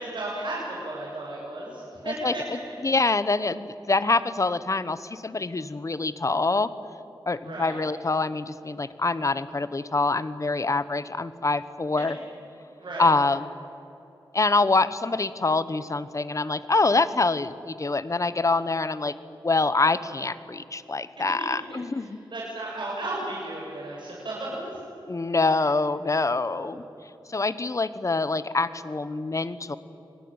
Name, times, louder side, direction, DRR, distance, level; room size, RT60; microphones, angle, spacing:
voice 1, 0.0-2.6 7.4-7.8 12.8-13.1 21.7-24.5 25.4-25.6 26.5-26.8, right 2 dB, 65° right, -5 dB, 7.2 m, -34 dB
voice 2, 2.1-6.7 7.3-12.2 13.0-13.5 14.3-19.1 19.4-22.2 25.1-26.8 27.3-29.8, left 3 dB, 40° left, 14 dB, 1.2 m, -25 dB
26.0 x 20.0 x 9.0 m, 2.9 s
wide cardioid pair, 85°, 8 cm